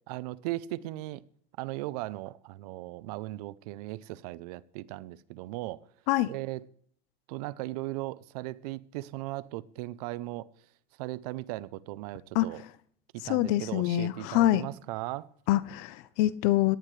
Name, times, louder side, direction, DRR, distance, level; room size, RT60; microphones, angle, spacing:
voice 1, 0.1-1.2 1.6-5.9 6.3-6.6 7.3-10.5 11.0-12.6 13.1-15.3, right 18 dB, 90° right, 0.6 m, -37 dB
voice 2, 13.2-14.6 15.5-16.8, left 15 dB, 80° left, 0.8 m, -25 dB
17.5 x 10.5 x 3.2 m
supercardioid pair, 115°, 19 cm